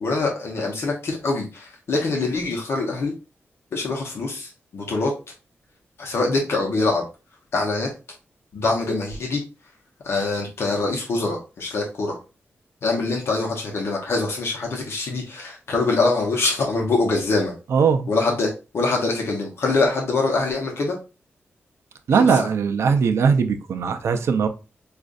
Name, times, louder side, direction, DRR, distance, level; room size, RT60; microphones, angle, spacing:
voice 1, 0.0-3.1 3.7-5.1 6.0-7.0 7.5-7.9 8.5-9.4 10.0-12.2 12.8-17.5 18.1-21.0 22.1-22.5, left 3 dB, 70° left, 0.9 m, -24 dB
voice 2, 17.7-18.1 22.1-24.5, right 6 dB, 85° right, 0.5 m, -19 dB
5.0 x 2.4 x 2.4 m
wide cardioid pair, 180°, 4 cm